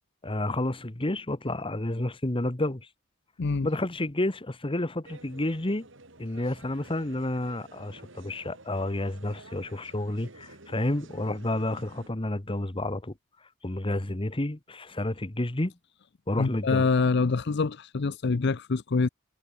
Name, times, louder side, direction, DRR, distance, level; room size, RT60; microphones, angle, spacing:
voice 1, 0.2-2.9 3.6-5.9 6.2-13.1 13.6-15.7 16.3-16.9, left 1 dB, 25° left, 1.4 m, -30 dB
sound 1, 5.0-12.1, right 2 dB, 70° right, 4.4 m, -51 dB
voice 2, 16.4-19.1, left 4 dB, 60° left, 0.6 m, -25 dB
head